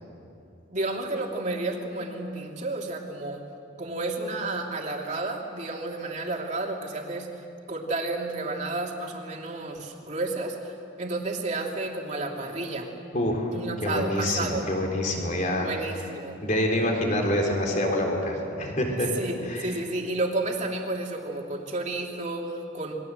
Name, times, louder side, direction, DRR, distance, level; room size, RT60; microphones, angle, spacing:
voice 1, 0.7-3.4 3.8-7.3 7.7-12.9 13.5-14.8 15.6-16.4 19.2-22.9, right 2 dB, 35° right, 0 dB, 2.9 m, -31 dB
voice 2, 13.1-13.5 13.8-15.7 16.4-19.1 19.4-19.7, left 1 dB, 40° left, 1 dB, 3.9 m, -26 dB
28.0 x 22.5 x 7.9 m, 2.7 s
head